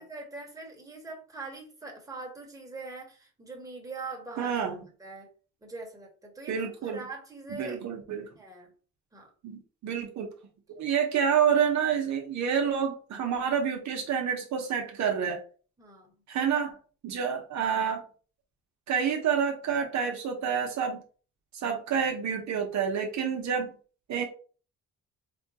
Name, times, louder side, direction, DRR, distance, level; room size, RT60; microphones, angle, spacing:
voice 1, 0.0-4.6 5.0-5.3 5.6-7.8 8.4-8.7 9.1-9.3 15.8-16.1, right 3 dB, 10° right, 0 dB, 1.3 m, -42 dB
voice 2, 4.4-4.8 6.5-7.0 7.5-8.3 9.4-10.3 10.8-15.4 16.3-16.8 17.0-18.0 18.9-21.0 21.5-23.7 24.1-24.2, right 7 dB, 65° right, 2 dB, 0.9 m, -28 dB
4.3 x 2.2 x 2.8 m, 0.38 s
cardioid pair, 90°, 30 cm